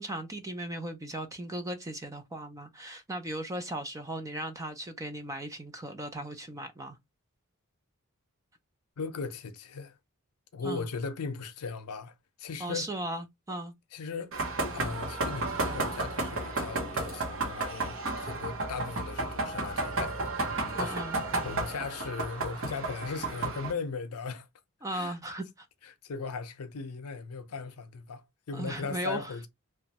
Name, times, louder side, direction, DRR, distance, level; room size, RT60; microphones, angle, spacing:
voice 1, 0.0-7.0 10.6-10.9 12.6-13.7 20.8-21.2 24.8-25.7 28.5-29.3, right 1 dB, 15° right, 0.4 m, -37 dB
voice 2, 9.0-10.0 10.5-12.9 13.9-14.3 14.7-20.3 20.8-21.0 21.4-24.5 24.9-25.2 25.8-29.5, left 4 dB, 85° left, 0.6 m, -38 dB
sound 1, 14.3-23.7, right 2 dB, 60° right, 0.8 m, -32 dB
3.0 x 2.2 x 2.8 m
head